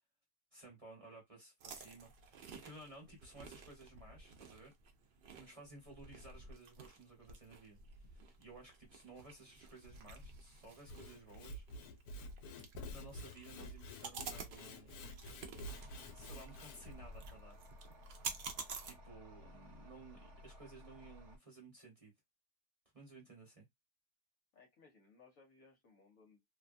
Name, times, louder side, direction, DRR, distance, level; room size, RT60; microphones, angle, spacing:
voice 1, 0.5-4.7 5.3-11.6 12.9-14.9 16.1-17.6 18.8-22.1 22.9-23.7, right 2 dB, 25° right, 1.0 m, -56 dB
sound 1, 1.6-18.9, right 5 dB, 80° right, 0.4 m, -51 dB
voice 2, 5.3-5.6 24.5-26.4, left 4 dB, 60° left, 1.1 m, -65 dB
Sawing / Wood, 10.7-17.0, left 1 dB, 80° left, 1.1 m, -49 dB
sound 2, 15.6-21.4, left 1 dB, 55° right, 1.2 m, -57 dB
2.8 x 2.2 x 2.5 m
omnidirectional pair, 1.7 m